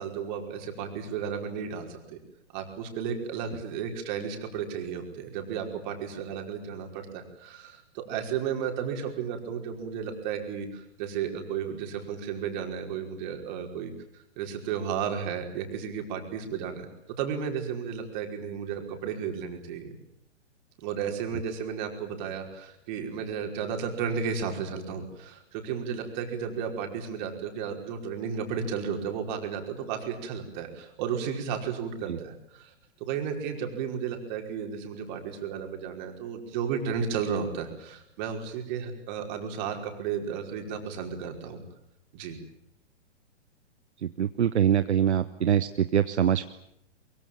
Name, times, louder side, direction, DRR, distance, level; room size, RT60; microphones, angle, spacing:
voice 1, 0.0-2.2 2.5-16.9 17.2-19.9 20.8-32.7 33.0-41.6 42.1-42.4, right 7 dB, 40° right, 4 dB, 5.2 m, -33 dB
voice 2, 44.0-46.5, right 9 dB, 65° right, 12 dB, 1.1 m, -24 dB
23.0 x 23.0 x 9.1 m, 0.76 s
figure-of-eight pair, 115°, 36 cm